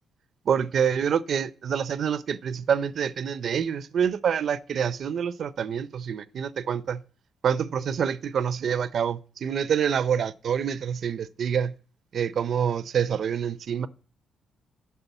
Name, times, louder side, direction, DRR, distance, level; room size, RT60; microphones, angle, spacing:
voice 1, 0.5-7.0 7.4-11.7 12.1-13.9, right 7 dB, 60° right, 0.7 m, -26 dB
11.5 x 5.7 x 8.1 m
cardioid pair, 100°, 0 cm